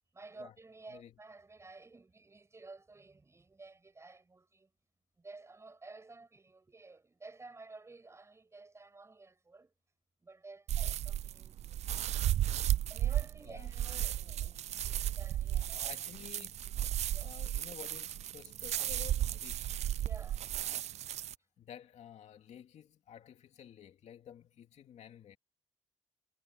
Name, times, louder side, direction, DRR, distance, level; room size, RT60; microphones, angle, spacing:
voice 1, 0.1-4.7 5.2-9.7 10.2-12.1 12.9-15.9 16.7-16.8 17.1-17.3 20.0-20.5, right 3 dB, 25° right, 6.2 m, -53 dB
sound 1, 10.7-21.3, right 12 dB, 75° right, 0.4 m, -34 dB
voice 2, 15.9-16.6 17.1-19.6 21.6-25.4, left 9 dB, 80° left, 2.5 m, -52 dB
cardioid pair, 110°, 12 cm